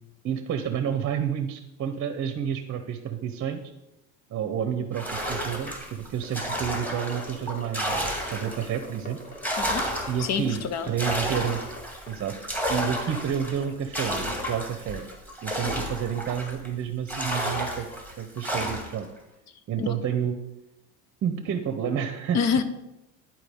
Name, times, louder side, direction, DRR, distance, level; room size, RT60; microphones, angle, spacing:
voice 1, 0.2-3.6 4.3-9.2 10.1-11.6 12.1-12.4 12.7-15.1 15.4-17.9 18.2-19.1 19.7-20.4 21.2-22.4, right 8 dB, 40° right, 8 dB, 0.8 m, -30 dB
sound 1, 4.9-8.8 9.2-16.7 17.1-19.0, equal, 5° left, 1.7 m, -31 dB
sound 2, 6.2-10.3 10.6-11.8 12.1-12.7 12.9-13.6 14.1-14.2 14.5-14.7 15.1-15.2 15.6-15.7 16.4-16.5, left 2 dB, 25° left, 1.6 m, -43 dB
voice 2, 10.2-10.9 19.8-19.9 22.3-22.6, left 6 dB, 50° left, 11 dB, 0.9 m, -26 dB
11.0 x 4.5 x 3.6 m, 0.95 s
supercardioid pair, 90°, 36 cm